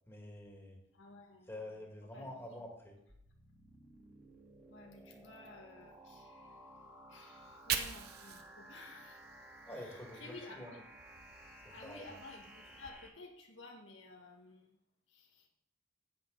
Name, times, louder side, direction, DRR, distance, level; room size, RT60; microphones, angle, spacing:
voice 1, 0.1-0.8 1.5-3.0 9.7-10.7 11.6-12.1, left 1 dB, 15° left, 0 dB, 2.0 m, -48 dB
voice 2, 0.9-1.8 2.1-2.7 4.7-6.7 7.1-9.3 9.7-10.9 11.7-14.8 15.1-15.5, left 2 dB, 90° left, 1 dB, 1.9 m, -54 dB
sound 1, 3.1-13.1, right 1 dB, 10° right, 1.9 m, -56 dB
Fire, 7.3-10.5 10.8-12.9, right 8 dB, 55° right, 0.9 m, -44 dB
10.5 x 8.3 x 4.0 m, 0.81 s
head